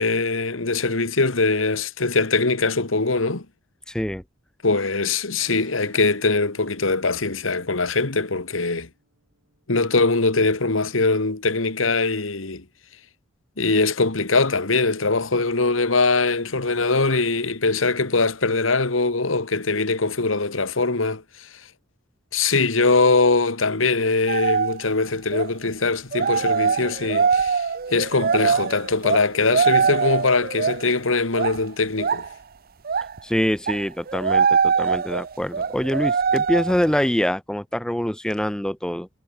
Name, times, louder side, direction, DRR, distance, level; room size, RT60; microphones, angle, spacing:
voice 1, 0.0-3.5 4.6-8.9 9.7-12.6 13.6-21.5 22.3-32.3, left 3 dB, 90° left, 1.9 m, -22 dB
voice 2, 3.9-4.2 33.2-39.1, equal, 5° left, 0.7 m, -24 dB
Keyboard (musical), 5.4-10.5, right 2 dB, 85° right, 7.6 m, -56 dB
sound 1, 24.3-24.8 25.3-25.5 26.1-30.9 31.3-31.7 32.0-32.3 32.9-33.2 33.7-36.9, right 6 dB, 50° right, 0.7 m, -22 dB
head